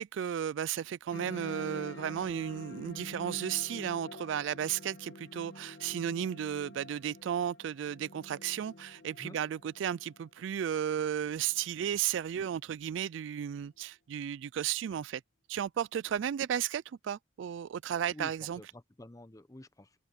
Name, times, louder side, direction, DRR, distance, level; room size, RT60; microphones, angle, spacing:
voice 1, 0.0-15.2 15.5-18.6, right 9 dB, 70° right, 0.3 m, -34 dB
sound 1, 1.1-12.1, left 2 dB, 65° left, 1.3 m, -48 dB
voice 2, 18.1-19.9, left 1 dB, 15° left, 0.7 m, -48 dB
open air
head